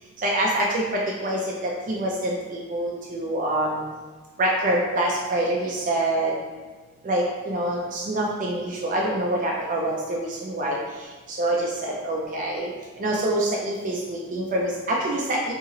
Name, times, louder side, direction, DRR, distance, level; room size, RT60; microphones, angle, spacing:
voice 1, 0.2-3.8 4.4-6.3 7.1-10.8 11.4-12.7 13.0-15.5, right 1 dB, 40° right, -2 dB, 0.4 m, -25 dB
2.9 x 2.8 x 3.7 m, 1.4 s
head